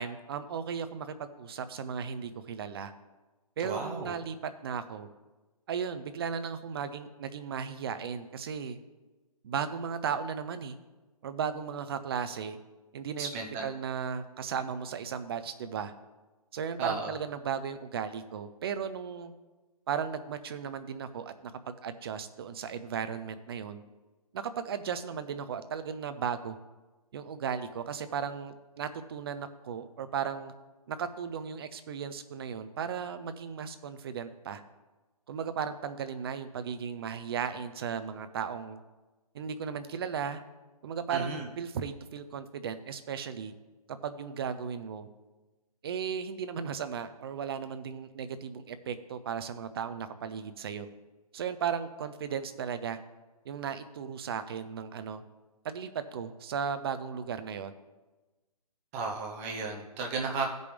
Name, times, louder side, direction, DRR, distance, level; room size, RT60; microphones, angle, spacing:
voice 1, 0.0-2.9 3.6-4.4 4.6-5.1 5.7-8.8 9.4-10.8 11.2-12.6 12.9-13.3 13.6-15.9 16.5-19.3 19.9-23.8 24.3-26.6 27.1-30.5 30.9-34.6 35.3-38.8 39.3-40.4 40.8-43.5 44.0-45.1 45.8-50.9 51.3-53.0 53.4-55.2 55.6-57.7, right 7 dB, 40° right, 11 dB, 0.6 m, -36 dB
voice 2, 3.6-4.1 13.2-13.6 16.8-17.1 41.1-41.5 58.9-60.5, right 4 dB, 20° right, 1 dB, 1.0 m, -34 dB
15.0 x 5.3 x 3.4 m, 1.2 s
figure-of-eight pair, 145°, 20 cm